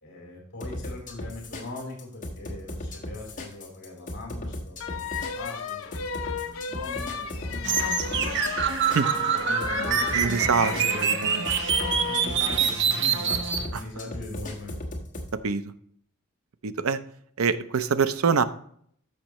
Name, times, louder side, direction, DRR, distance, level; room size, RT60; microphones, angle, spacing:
voice 1, 0.0-8.4 9.0-11.2 12.0-14.7, left 2 dB, 55° left, -2 dB, 3.5 m, -40 dB
sound 1, 0.6-15.3, left 1 dB, 40° left, 1.4 m, -36 dB
sound 2, 4.8-12.3, left 7 dB, 70° left, 0.7 m, -34 dB
sound 3, 7.6-13.7, right 7 dB, 55° right, 0.9 m, -25 dB
voice 2, 10.1-11.4 13.7-13.8 15.4-15.6 16.6-17.0 17.4-18.4, right 5 dB, 85° right, 12 dB, 0.6 m, -25 dB
13.5 x 5.4 x 3.0 m, 0.62 s
head